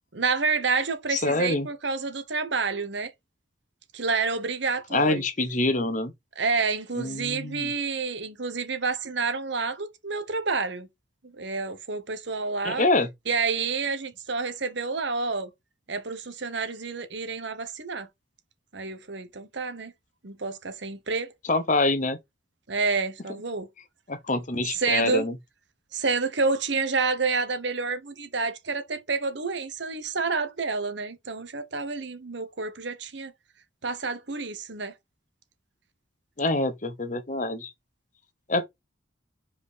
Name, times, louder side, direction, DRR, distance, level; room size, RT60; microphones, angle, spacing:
voice 1, 0.1-3.1 3.9-5.2 6.4-10.9 11.4-12.9 13.3-15.5 15.9-18.1 18.7-19.9 20.2-21.3 22.7-23.7 24.7-25.2 25.9-33.3 33.8-34.9, right 4 dB, 65° right, 1.1 m, -29 dB
voice 2, 1.1-1.7 4.9-6.1 7.0-7.7 12.6-13.1 21.4-22.2 24.1-25.4 36.4-37.7 38.5-38.7, left 2 dB, 40° left, 1.0 m, -25 dB
5.0 x 4.9 x 4.9 m
head